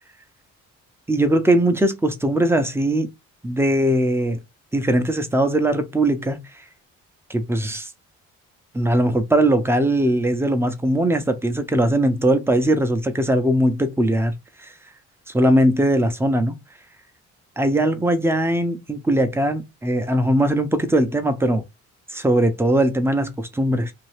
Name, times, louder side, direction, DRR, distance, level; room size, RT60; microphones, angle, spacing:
voice 1, 1.1-3.1 3.4-4.4 4.7-6.4 7.3-7.9 8.7-14.3 14.6-14.7 15.3-16.6 17.6-21.6 22.1-23.9, right 1 dB, 10° right, 0.6 m, -20 dB
2.7 x 2.3 x 3.2 m
cardioid pair, 90°, 30 cm